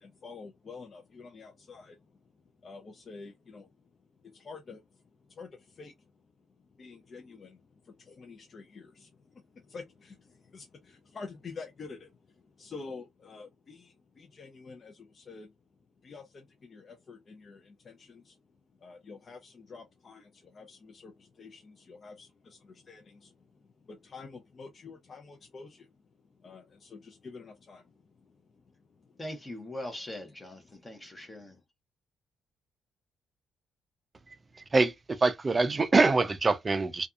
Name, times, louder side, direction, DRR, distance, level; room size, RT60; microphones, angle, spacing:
voice 1, 0.0-2.0 2.6-3.7 4.3-4.8 5.3-5.9 6.8-7.6 7.8-9.1 9.7-12.1 12.6-15.5 16.0-18.3 18.8-23.3 23.9-25.9 26.4-27.9, left 4 dB, 45° left, 0.5 m, -48 dB
voice 2, 29.2-31.6, left 1 dB, 20° left, 0.9 m, -41 dB
voice 3, 34.7-37.1, right 3 dB, 25° right, 0.4 m, -24 dB
2.6 x 2.3 x 2.4 m
cardioid pair, 90°, 0 cm